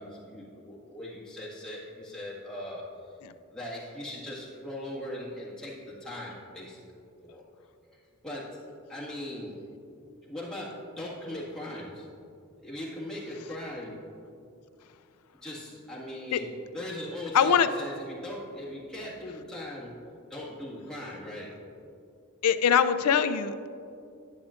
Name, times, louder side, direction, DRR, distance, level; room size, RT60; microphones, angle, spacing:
voice 1, 0.0-2.8 3.5-6.8 7.2-7.4 8.2-8.5 8.9-9.5 10.2-12.1 12.6-13.9 15.4-19.9 20.3-21.5, left 1 dB, 5° left, -7 dB, 1.7 m, -39 dB
voice 2, 17.3-17.7 22.4-23.7, left 7 dB, 90° left, 12 dB, 0.4 m, -23 dB
10.5 x 9.8 x 2.5 m, 2.5 s
head